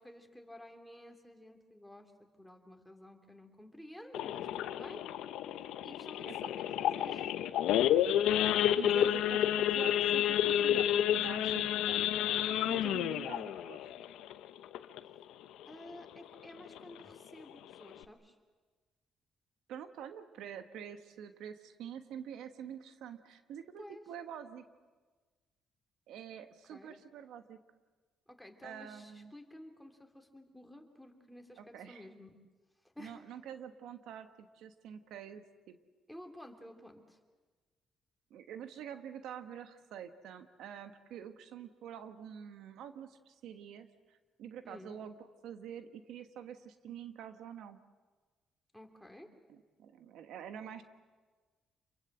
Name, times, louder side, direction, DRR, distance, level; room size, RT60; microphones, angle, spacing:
voice 1, 0.0-2.1 2.4-5.0 5.8-7.3 15.7-18.3 23.8-24.0 26.7-27.0 28.3-32.3 32.9-33.2 36.1-37.2 44.6-45.0 48.7-49.3, left 1 dB, 5° left, 4 dB, 3.2 m, -52 dB
Idling / Accelerating revving vroom / Sawing, 4.1-15.2 15.6-15.8 16.1-16.2 16.7-16.9 17.4-17.5 17.7-18.0, left 11 dB, 90° left, 0.9 m, -30 dB
voice 2, 8.5-12.0 12.6-13.8 19.7-24.6 26.1-27.6 28.6-29.3 31.6-32.1 33.0-35.8 38.3-45.1 45.4-47.8 49.5-50.8, right 9 dB, 85° right, 9 dB, 1.3 m, -47 dB
28.0 x 22.5 x 7.9 m, 1.4 s
cardioid pair, 90°, 0 cm